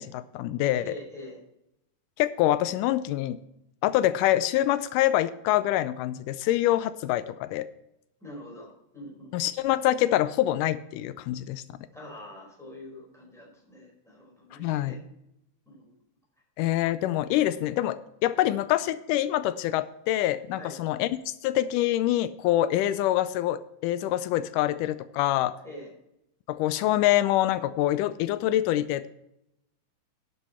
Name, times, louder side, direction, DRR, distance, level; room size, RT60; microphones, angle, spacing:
voice 1, 0.0-0.9 2.2-3.4 3.8-7.7 9.3-11.6 14.6-15.0 16.6-21.1 21.4-25.5 26.5-29.1, left 14 dB, 85° left, 14 dB, 2.1 m, -25 dB
voice 2, 0.8-1.4 8.2-9.3 11.9-15.0 15.7-16.0 20.5-20.8 25.6-25.9, left 1 dB, ahead, -3 dB, 4.2 m, -44 dB
11.5 x 8.1 x 4.2 m, 0.82 s
omnidirectional pair, 3.6 m